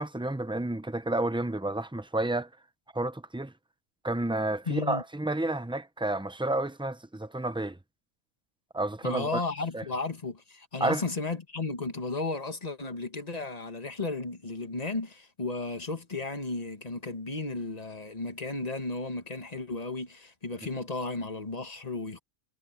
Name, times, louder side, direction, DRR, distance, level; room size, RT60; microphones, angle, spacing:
voice 1, 0.0-2.5 2.9-3.5 4.0-7.8 8.7-9.4 9.7-9.8 10.8-11.0, right 2 dB, 10° right, 0.3 m, -30 dB
voice 2, 4.7-5.0 9.0-22.2, left 3 dB, 25° left, 1.5 m, -34 dB
omnidirectional pair, 1.6 m